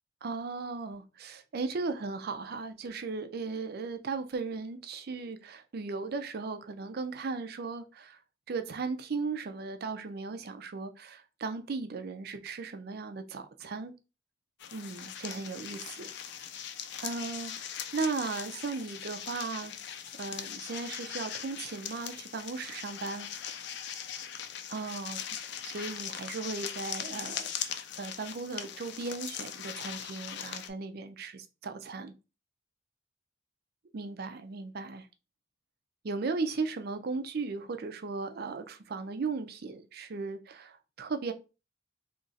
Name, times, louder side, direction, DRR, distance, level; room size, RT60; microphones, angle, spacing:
voice 1, 0.2-8.2 8.5-13.9 14.7-16.5 17.0-19.7 20.2-23.3 24.7-27.5 28.0-32.1 33.9-35.1 36.0-41.3, right 4 dB, 55° right, 0.5 m, -37 dB
sound 1, 14.6-30.7, left 9 dB, 60° left, 0.4 m, -40 dB
2.9 x 2.5 x 4.0 m
head